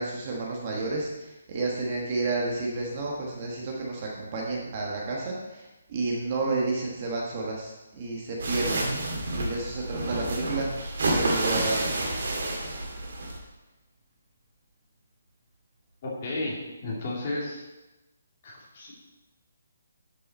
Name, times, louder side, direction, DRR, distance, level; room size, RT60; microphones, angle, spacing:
voice 1, 0.0-8.9 9.3-11.8, right 3 dB, 25° right, -2 dB, 1.2 m, -31 dB
sound 1, 8.4-13.4, right 2 dB, 55° right, 2.2 m, -29 dB
voice 2, 16.0-17.6 18.4-18.9, left 2 dB, 30° left, -4 dB, 2.5 m, -33 dB
12.0 x 5.5 x 4.3 m, 1.0 s
hypercardioid pair, 175°, 0 cm